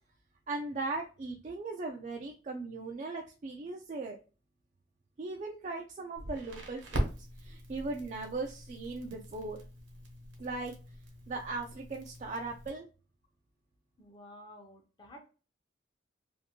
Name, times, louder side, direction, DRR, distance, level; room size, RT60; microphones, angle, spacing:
voice 1, 0.5-4.2 5.2-7.1 7.4-9.6 10.4-10.7 11.3-12.9, right 3 dB, 40° right, 1 dB, 0.3 m, -38 dB
Crackle, 6.2-12.7, equal, 75° right, 0.9 m, -41 dB
voice 2, 14.0-15.3, left 1 dB, 25° left, 3 dB, 0.5 m, -52 dB
2.7 x 2.5 x 2.8 m, 0.35 s
head